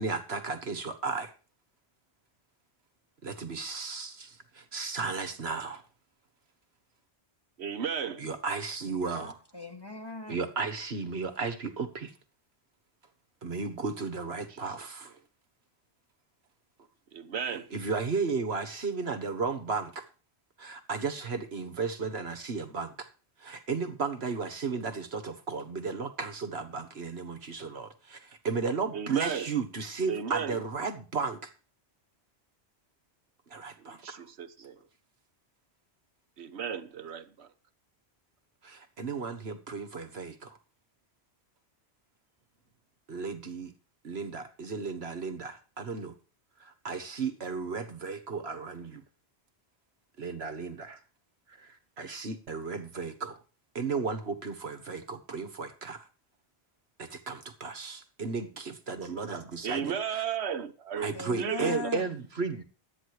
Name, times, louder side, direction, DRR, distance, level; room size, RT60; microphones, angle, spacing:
voice 1, 0.0-1.3 3.2-5.8 8.2-9.4 10.3-12.1 13.4-15.1 17.7-20.1 20.6-23.1 23.4-31.5 33.5-34.3 38.6-40.6 43.1-43.7 44.0-46.1 46.6-49.0 50.2-51.0 51.5-53.4 53.8-56.1 57.0-60.2 61.0-62.6, right 4 dB, 70° right, 1.8 m, -34 dB
voice 2, 7.6-8.2 17.1-17.7 28.9-29.5 30.1-30.5 33.8-34.8 36.4-37.5 59.6-61.9, right 7 dB, 90° right, 1.2 m, -34 dB
voice 3, 9.5-10.5 61.1-62.2, left 3 dB, 20° left, 2.3 m, -39 dB
12.5 x 9.6 x 4.8 m
omnidirectional pair, 1.1 m